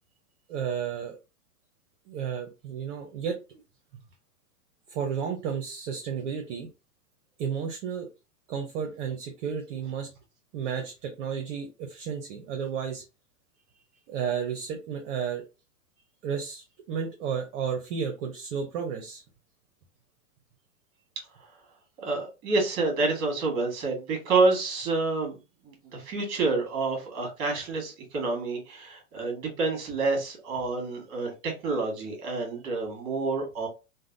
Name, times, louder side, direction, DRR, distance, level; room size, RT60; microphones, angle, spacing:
voice 1, 0.5-1.2 2.1-3.6 4.9-6.7 7.4-8.1 8.5-10.1 10.5-13.0 14.1-15.4 16.2-19.2, right 7 dB, 50° right, 0.8 m, -32 dB
voice 2, 22.0-25.3 25.6-33.7, right 3 dB, 35° right, 1.6 m, -28 dB
3.3 x 2.2 x 2.5 m
hypercardioid pair, 120°, 46 cm